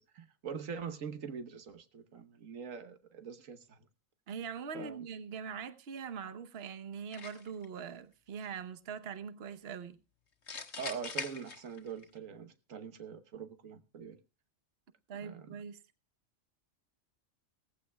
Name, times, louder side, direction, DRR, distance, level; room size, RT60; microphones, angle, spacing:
voice 1, 0.0-3.8 4.7-5.0 10.7-14.2 15.2-15.6, right 6 dB, 85° right, 1.5 m, -43 dB
voice 2, 4.3-10.0 15.1-15.8, right 6 dB, 55° right, 1.1 m, -42 dB
sound 1, 7.1-7.7 10.5-12.0, left 5 dB, 60° left, 1.7 m, -41 dB
18.0 x 15.0 x 2.3 m
omnidirectional pair, 1.3 m